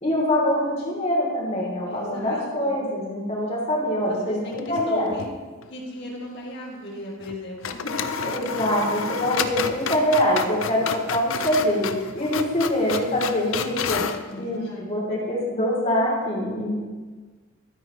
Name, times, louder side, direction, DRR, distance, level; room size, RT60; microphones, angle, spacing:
voice 1, 0.0-5.2 8.2-14.0 14.4-16.8, equal, 35° left, -4 dB, 3.0 m, -24 dB
voice 2, 1.9-2.8 4.0-5.3 5.7-8.2 14.3-14.8, left 1 dB, 55° left, -3 dB, 2.1 m, -36 dB
sound 1, 4.5-5.3 5.6-5.7 7.2-7.4 7.6-14.2, left 6 dB, 75° left, 0.5 m, -30 dB
13.0 x 8.9 x 3.1 m, 1.4 s
head